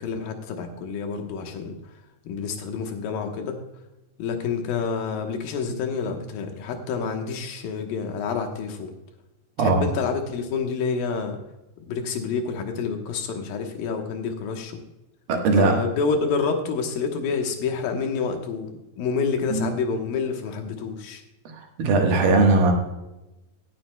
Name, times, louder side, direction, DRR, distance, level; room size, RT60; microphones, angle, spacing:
voice 1, 0.0-1.8 2.3-3.6 4.2-8.9 9.6-11.4 11.9-14.8 15.5-21.2, left 5 dB, 80° left, 4 dB, 2.9 m, -28 dB
voice 2, 15.3-15.8 19.5-19.7 21.5-22.7, right 3 dB, 80° right, 2 dB, 3.2 m, -19 dB
17.5 x 9.4 x 2.2 m, 0.98 s
omnidirectional pair, 4.0 m